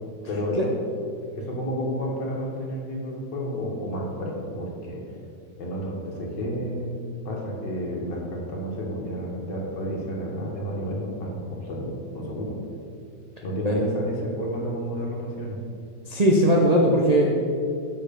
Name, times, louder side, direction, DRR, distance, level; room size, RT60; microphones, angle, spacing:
voice 1, 0.3-0.8 1.3-5.0 5.6-12.6 13.4-15.6, equal, 75° left, -2 dB, 2.1 m, -31 dB
voice 2, 16.1-17.5, equal, 55° right, -1 dB, 0.4 m, -19 dB
6.9 x 6.7 x 5.2 m, 2.5 s
omnidirectional pair, 1.9 m